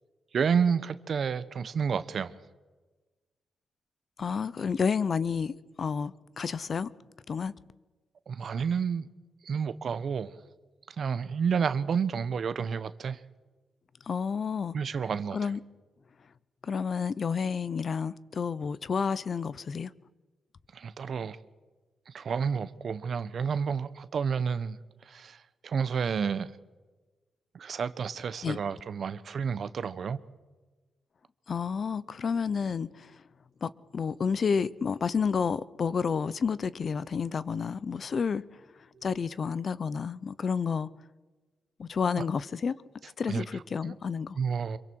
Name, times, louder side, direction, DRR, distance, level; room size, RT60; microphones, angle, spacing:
voice 1, 0.3-2.3 8.3-9.1 9.4-10.3 11.0-13.2 14.7-15.5 20.7-21.4 22.1-24.8 25.1-25.4 25.6-26.5 27.5-30.2 43.3-43.4 43.8-43.9 44.4-44.8, right 6 dB, 60° right, 0.9 m, -30 dB
voice 2, 4.2-6.9 7.3-7.5 14.1-14.7 15.3-15.6 16.6-19.9 28.4-28.6 31.5-33.1 33.6-38.4 39.0-40.9 41.8-42.8 43.0-44.4, left 6 dB, 50° left, 0.7 m, -30 dB
26.0 x 23.5 x 4.6 m
cardioid pair, 85°, 0 cm